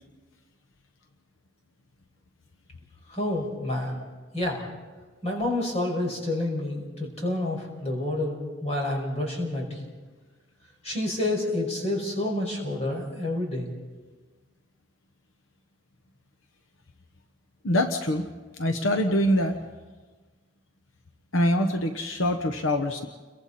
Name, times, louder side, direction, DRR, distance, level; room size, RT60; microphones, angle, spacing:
voice 1, 3.1-4.0 4.3-4.6 5.2-9.9 10.8-13.7, left 1 dB, 35° left, -1 dB, 5.6 m, -29 dB
voice 2, 17.6-18.3 18.6-19.6 21.3-23.1, left 1 dB, 80° left, 6 dB, 1.1 m, -24 dB
30.0 x 23.0 x 4.3 m, 1.4 s
head